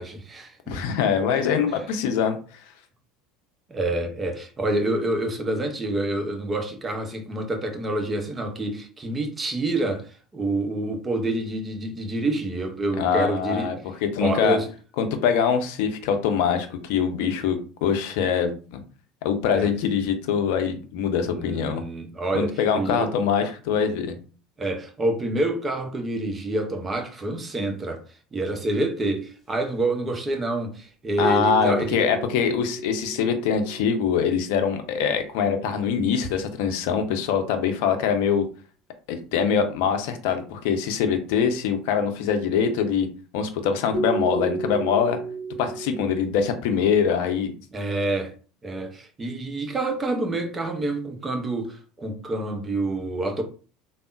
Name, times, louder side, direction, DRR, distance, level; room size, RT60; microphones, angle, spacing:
voice 1, 0.0-0.8 3.7-13.7 14.2-14.7 19.5-19.7 21.4-23.1 24.6-28.0 28.3-32.1 47.7-48.4 48.6-53.4, right 2 dB, 25° right, 0.7 m, -27 dB
voice 2, 0.7-2.4 13.0-14.6 15.0-18.8 19.2-21.8 22.3-24.2 31.2-38.5 39.1-43.1 43.3-45.2 45.6-47.5, left 7 dB, 65° left, 0.5 m, -23 dB
sound 1, 31.2-35.3 43.9-46.1, right 4 dB, 15° left, 1.4 m, -33 dB
3.5 x 2.0 x 2.5 m
figure-of-eight pair, 70°, 0 cm